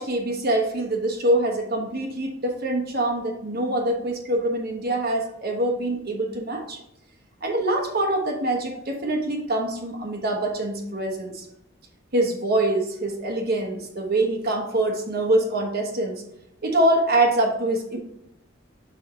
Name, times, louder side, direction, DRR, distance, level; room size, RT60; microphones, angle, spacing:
voice 1, 0.0-6.8 7.4-11.4 12.1-16.2 16.6-18.0, right 1 dB, 55° right, 2 dB, 1.1 m, -24 dB
5.8 x 5.0 x 3.5 m, 0.80 s
head